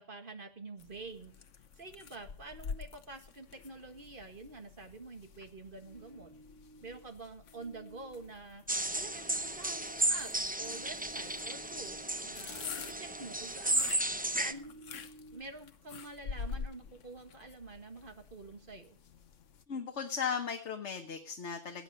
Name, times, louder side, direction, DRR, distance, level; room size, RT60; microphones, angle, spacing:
voice 1, 0.0-1.4 1.7-6.3 6.8-8.6 8.9-10.3 10.6-13.9 14.3-14.7 15.3-19.0, right 3 dB, 45° right, 6 dB, 1.9 m, -48 dB
sound 1, 0.8-19.6, left 6 dB, 90° left, 1.3 m, -48 dB
sound 2, 5.8-7.1 7.5-13.6 13.8-15.4, right 2 dB, 15° left, 1.9 m, -55 dB
sound 3, 8.7-14.5, right 1 dB, 10° right, 0.5 m, -34 dB
voice 2, 19.7-21.8, left 6 dB, 70° left, 5 dB, 1.5 m, -36 dB
18.0 x 8.8 x 5.5 m, 0.43 s
omnidirectional pair, 1.2 m